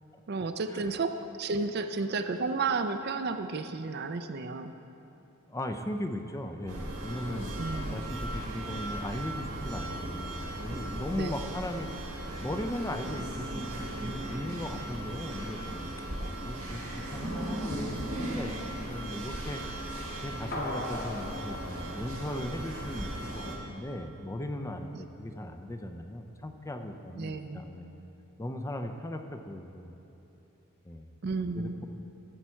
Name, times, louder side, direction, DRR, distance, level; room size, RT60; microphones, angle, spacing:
voice 1, 0.3-4.7 7.6-8.0 11.1-11.6 24.9-25.0 27.2-27.6 31.2-31.8, right 4 dB, 45° right, 8 dB, 0.4 m, -32 dB
voice 2, 5.5-11.9 12.4-18.6 18.9-19.6 20.2-27.9 28.4-29.9 30.8-31.1 31.6-31.9, left 1 dB, 15° left, 6 dB, 0.4 m, -38 dB
sound 1, 6.7-23.6, right 1 dB, 85° right, 1.8 m, -37 dB
sound 2, 20.5-23.1 23.4-23.5, left 1 dB, 45° left, 1.3 m, -39 dB
13.5 x 7.3 x 4.5 m, 2.9 s
head